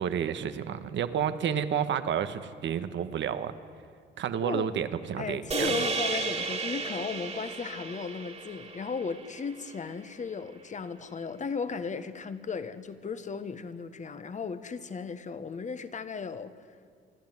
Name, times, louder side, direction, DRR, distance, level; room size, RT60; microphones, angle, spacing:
voice 1, 0.0-3.5 4.2-5.8, right 8 dB, 70° right, 11 dB, 1.3 m, -30 dB
voice 2, 4.4-4.7 5.2-16.6, left 5 dB, 40° left, 11 dB, 1.3 m, -36 dB
sound 1, 5.5-9.9, right 4 dB, 35° right, 2.3 m, -33 dB
27.5 x 12.0 x 9.3 m, 2.2 s
cardioid pair, 90°, 20 cm